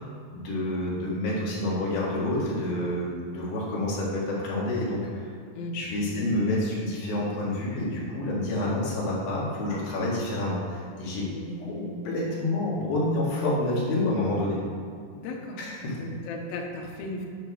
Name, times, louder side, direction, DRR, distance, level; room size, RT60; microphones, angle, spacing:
voice 1, 0.0-5.3 5.7-11.3 11.7-14.6 15.6-16.0, left 1 dB, 90° left, -6 dB, 3.6 m, -28 dB
voice 2, 11.3-12.2 15.2-15.6 15.9-17.2, left 2 dB, 70° left, 1 dB, 1.5 m, -36 dB
10.0 x 3.5 x 6.4 m, 2.3 s
omnidirectional pair, 4.1 m